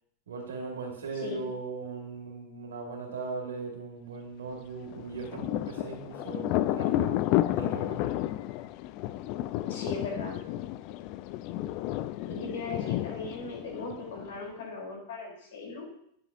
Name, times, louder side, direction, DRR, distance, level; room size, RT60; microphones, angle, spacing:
voice 1, 0.3-8.0, right 4 dB, 75° right, 1 dB, 2.2 m, -39 dB
Thunder, 4.9-14.4, left 14 dB, 50° left, 0.3 m, -31 dB
voice 2, 9.6-10.4 12.3-15.8, left 3 dB, 70° left, -1 dB, 3.4 m, -38 dB
9.7 x 7.8 x 2.6 m, 0.71 s
hypercardioid pair, 95°, 0 cm